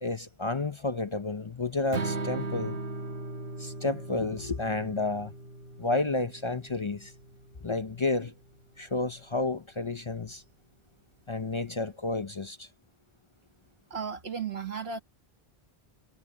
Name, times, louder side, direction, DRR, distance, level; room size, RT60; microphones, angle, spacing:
voice 1, 0.0-2.8 3.6-5.3 5.8-7.1 7.6-8.3 8.8-10.4 11.3-12.7, left 3 dB, 35° left, 0.7 m, -31 dB
Strum, 1.9-8.2, right 2 dB, 60° right, 1.7 m, -38 dB
voice 2, 13.9-15.0, right 6 dB, 80° right, 2.1 m, -34 dB
omnidirectional pair, 1.0 m